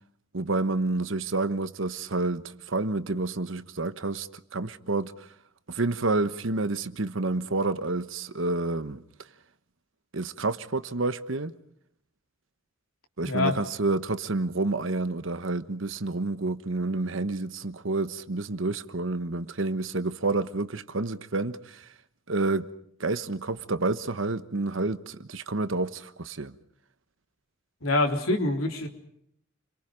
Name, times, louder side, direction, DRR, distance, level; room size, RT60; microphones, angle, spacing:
voice 1, 0.3-5.3 5.7-9.0 10.1-11.5 13.2-21.9 22.3-22.7 23.0-26.5, right 2 dB, 65° right, 1.2 m, -29 dB
voice 2, 13.2-13.5 27.8-28.9, left 2 dB, 90° left, 3.7 m, -25 dB
30.0 x 23.5 x 5.2 m
head